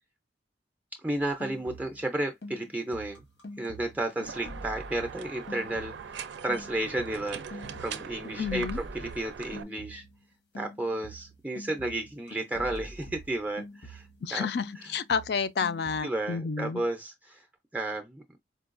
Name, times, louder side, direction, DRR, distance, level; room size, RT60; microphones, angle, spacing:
voice 1, 1.0-3.2 3.6-10.0 10.6-14.5 16.0-17.4 17.7-18.2, right 1 dB, 10° right, 0.4 m, -33 dB
sound 1, 1.2-2.1 2.4-6.2 6.5-10.2 10.5-14.3 14.6-16.0, equal, 85° left, 1.2 m, -45 dB
sound 2, 4.2-9.6, right 6 dB, 80° right, 0.4 m, -41 dB
voice 2, 8.4-8.8 14.2-16.8, left 5 dB, 60° left, 0.4 m, -30 dB
4.5 x 2.3 x 2.5 m
head